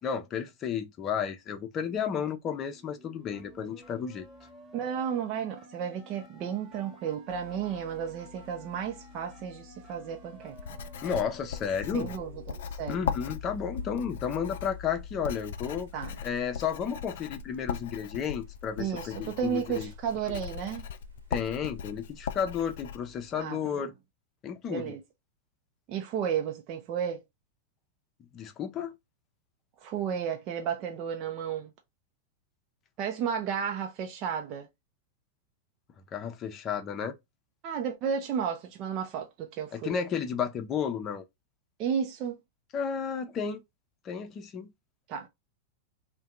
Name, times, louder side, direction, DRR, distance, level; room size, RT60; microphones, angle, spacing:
voice 1, 0.0-4.2 11.0-12.1 12.9-15.9 16.2-19.9 20.3-20.4 21.3-23.9 24.4-25.0 28.3-28.9 36.1-37.2 39.7-41.2 42.7-43.6 44.0-44.7, left 7 dB, 35° left, 0.7 m, -32 dB
sound 1, 2.7-12.7, right 1 dB, 5° right, 1.3 m, -53 dB
voice 2, 4.7-10.6 11.9-13.1 15.9-16.2 18.8-20.9 23.4-23.6 24.7-25.0 25.9-27.2 29.8-31.7 33.0-34.7 37.6-40.0 41.8-42.4 45.1-45.3, right 8 dB, 45° right, 0.6 m, -33 dB
sound 2, 7.3-23.4, left 8 dB, 85° right, 1.0 m, -49 dB
Writing, 10.5-23.0, left 7 dB, 70° left, 0.4 m, -39 dB
2.8 x 2.2 x 3.6 m
hypercardioid pair, 100°, 0 cm